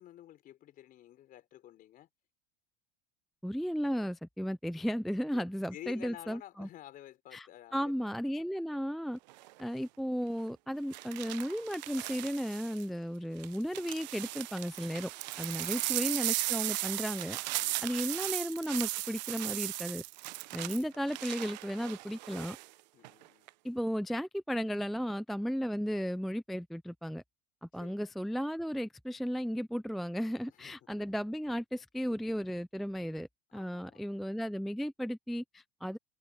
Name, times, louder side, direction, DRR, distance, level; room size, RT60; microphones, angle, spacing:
voice 1, 0.0-2.1 5.3-5.4 5.7-7.9 15.6-16.2 17.6-18.2 20.5-21.0 22.9-23.5 27.7-28.1 30.5-30.8 33.5-34.2, left 13 dB, 40° left, 5.0 m, -52 dB
voice 2, 3.4-6.7 7.3-7.5 7.7-9.2 9.6-15.1 15.4-17.4 17.8-20.0 20.5-22.6 23.6-27.2 27.6-36.0, equal, ahead, 0.3 m, -35 dB
sound 1, 9.3-9.6 10.9-12.8 13.4-22.7 23.0-23.5, right 20 dB, 90° right, 0.7 m, -37 dB
supercardioid pair, 140°, 21 cm